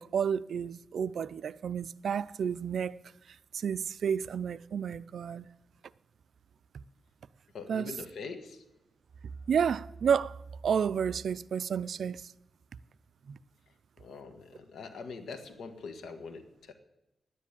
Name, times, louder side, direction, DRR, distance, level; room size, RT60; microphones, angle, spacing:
voice 1, 0.0-3.0 3.5-5.5 7.7-7.9 9.5-12.3 13.3-13.4, right 7 dB, 70° right, 0.4 m, -31 dB
voice 2, 7.5-8.6 14.0-16.7, left 4 dB, 80° left, 1.6 m, -43 dB
10.5 x 10.0 x 8.7 m
wide cardioid pair, 115°, 0 cm